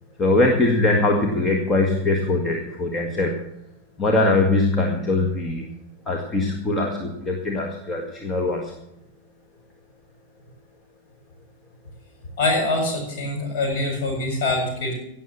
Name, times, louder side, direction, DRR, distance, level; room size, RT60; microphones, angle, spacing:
voice 1, 0.2-3.3 4.0-5.7 6.1-8.7, left 2 dB, 20° left, 1 dB, 1.9 m, -21 dB
voice 2, 12.4-14.9, left 2 dB, 50° left, 1 dB, 7.3 m, -24 dB
17.5 x 7.6 x 7.4 m, 0.81 s
figure-of-eight pair, 90°, 0 cm